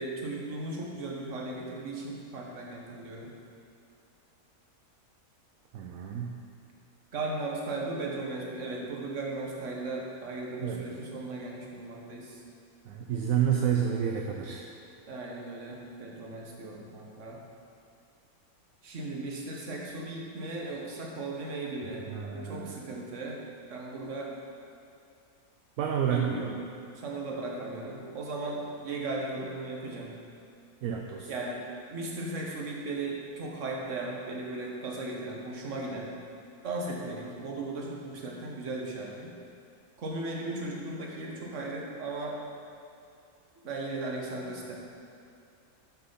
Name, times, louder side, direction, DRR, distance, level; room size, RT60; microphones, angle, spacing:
voice 1, 0.0-3.3 7.1-12.4 15.1-17.4 18.8-22.0 22.3-23.4 23.7-24.3 26.1-26.5 26.9-30.1 31.3-31.6 31.9-36.1 36.6-39.3 40.0-42.4 43.6-44.7, right 2 dB, 55° right, -2 dB, 1.5 m, -36 dB
voice 2, 5.7-6.3 10.6-10.8 12.9-14.6 22.1-22.7 25.8-26.4 30.8-31.3, right 8 dB, 75° right, 0 dB, 1.0 m, -29 dB
6.5 x 6.1 x 5.6 m, 2.5 s
omnidirectional pair, 1.5 m